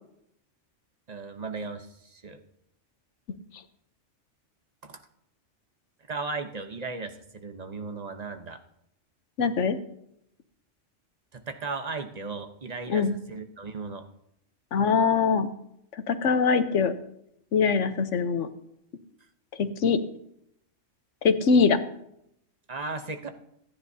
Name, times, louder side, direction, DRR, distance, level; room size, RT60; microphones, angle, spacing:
voice 1, 1.1-2.4 4.8-5.0 6.1-8.6 11.3-14.0 22.7-23.3, right 4 dB, 35° right, 7 dB, 1.0 m, -36 dB
voice 2, 9.4-9.8 12.9-13.1 14.7-15.5 15.9-16.9 17.5-18.5 19.6-20.0 21.2-21.8, left 5 dB, 75° left, 10 dB, 1.2 m, -22 dB
25.0 x 10.0 x 2.8 m, 0.77 s
omnidirectional pair, 1.3 m